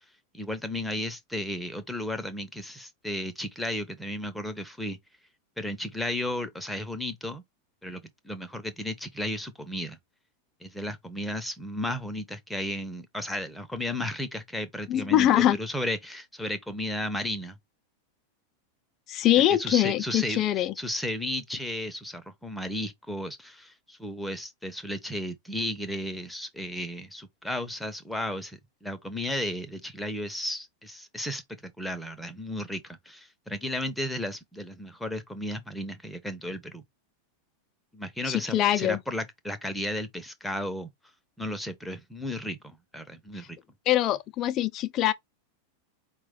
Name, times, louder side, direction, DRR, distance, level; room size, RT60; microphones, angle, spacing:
voice 1, 0.3-5.0 5.6-7.4 7.8-10.0 10.6-17.5 19.6-36.8 37.9-40.9 41.4-43.6, left 1 dB, 5° left, 0.7 m, -34 dB
voice 2, 14.9-15.6 19.1-20.7 38.3-39.0 43.9-45.1, left 13 dB, 35° left, 0.4 m, -23 dB
4.6 x 2.2 x 3.6 m
figure-of-eight pair, 90°, 0 cm